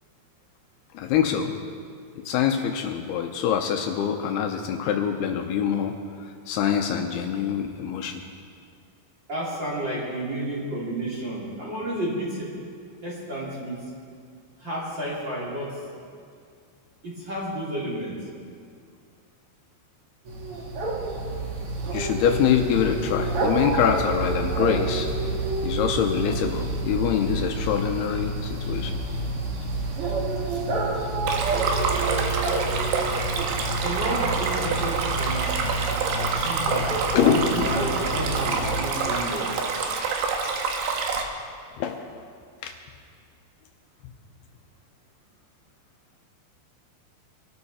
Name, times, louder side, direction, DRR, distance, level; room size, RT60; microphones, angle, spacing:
voice 1, 0.9-1.5 2.2-8.2 21.9-25.1 25.6-29.0 32.0-32.3 37.1-37.5 40.4-40.5 41.8-42.1 42.6-42.7, left 8 dB, 80° left, 4 dB, 2.7 m, -25 dB
voice 2, 9.3-12.5 13.0-13.8 14.6-15.8 17.0-18.2 33.8-39.5, right 1 dB, 30° right, -7 dB, 3.6 m, -31 dB
sound 1, 20.2-38.8, right 2 dB, 55° right, 1.7 m, -28 dB
Stream, 31.3-41.2, right 5 dB, 75° right, 3.1 m, -27 dB
23.5 x 13.0 x 4.3 m, 2.2 s
omnidirectional pair, 4.8 m